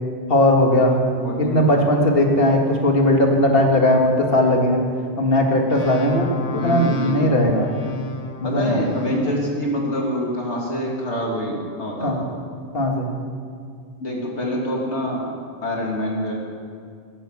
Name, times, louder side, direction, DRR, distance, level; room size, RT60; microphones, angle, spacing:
voice 1, 0.3-1.0 1.4-4.8 5.2-6.3 6.6-7.7 8.4-8.9 12.0-12.2 12.7-13.1, left 1 dB, 55° left, 1 dB, 2.1 m, -18 dB
voice 2, 1.1-1.9 6.3-7.3 8.4-12.4 14.0-15.3 15.6-16.3, equal, 75° left, -2 dB, 3.0 m, -26 dB
sound 1, 5.7-9.3, left 5 dB, 40° left, 0.8 m, -31 dB
17.0 x 8.7 x 7.4 m, 2.2 s
omnidirectional pair, 1.2 m